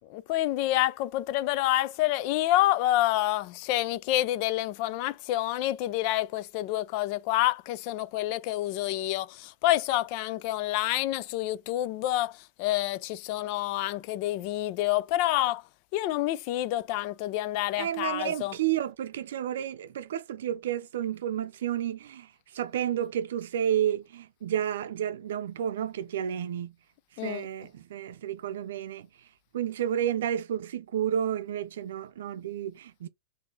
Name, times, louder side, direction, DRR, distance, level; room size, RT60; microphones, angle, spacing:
voice 1, 0.1-15.6 15.9-18.5 27.2-27.5, left 15 dB, 50° left, 0.5 m, -28 dB
voice 2, 17.8-26.7 27.2-29.1 29.5-33.1, right 10 dB, 80° right, 0.5 m, -31 dB
4.0 x 2.7 x 3.9 m
supercardioid pair, 130°, 0 cm